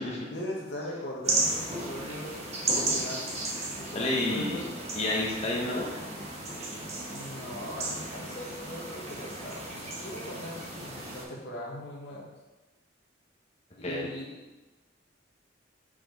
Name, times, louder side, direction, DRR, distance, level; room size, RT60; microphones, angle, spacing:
voice 1, 0.3-2.3 2.7-3.3 3.8-4.7 7.1-12.3 13.8-14.4, left 1 dB, 60° left, -3 dB, 1.5 m, -40 dB
sound 1, 1.2-11.2, right 2 dB, 35° right, 1.3 m, -34 dB
voice 2, 3.6-4.6 4.9-5.9 13.8-14.1, left 1 dB, 35° left, -3 dB, 1.4 m, -30 dB
5.8 x 5.1 x 4.1 m, 1.1 s
head